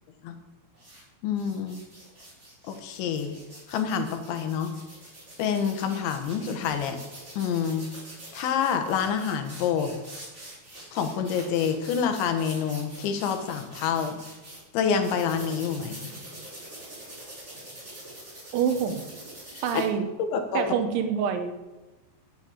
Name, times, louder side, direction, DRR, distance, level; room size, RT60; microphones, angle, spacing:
sound 1, 0.7-1.0 1.4-14.6 15.0-19.8, right 1 dB, 15° right, 4.3 m, -45 dB
voice 1, 1.2-1.8 2.7-3.4 3.7-4.7 5.4-7.0 7.4-7.9 8.3-9.9 10.9-14.2 14.7-16.1 19.5-19.8 20.2-20.6, left 7 dB, 80° left, 7 dB, 3.5 m, -27 dB
voice 2, 18.5-19.0 19.6-20.1 20.6-21.5, right 7 dB, 80° right, 8 dB, 3.5 m, -26 dB
12.0 x 8.0 x 8.6 m, 1.1 s
omnidirectional pair, 5.3 m